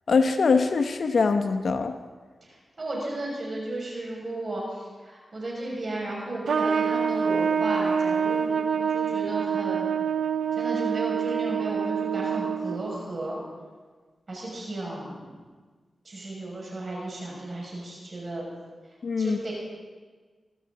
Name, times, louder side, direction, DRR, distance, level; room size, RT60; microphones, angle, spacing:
voice 1, 0.1-1.9 19.0-19.4, left 4 dB, 70° left, 7 dB, 0.9 m, -23 dB
voice 2, 2.4-9.9 10.6-13.4 14.3-15.4 16.0-18.4 19.2-19.5, right 1 dB, 55° right, -3 dB, 6.0 m, -34 dB
Trumpet, 6.5-13.0, right 7 dB, 85° right, 0.5 m, -26 dB
24.0 x 12.5 x 3.9 m, 1.4 s
cardioid pair, 50°, 0 cm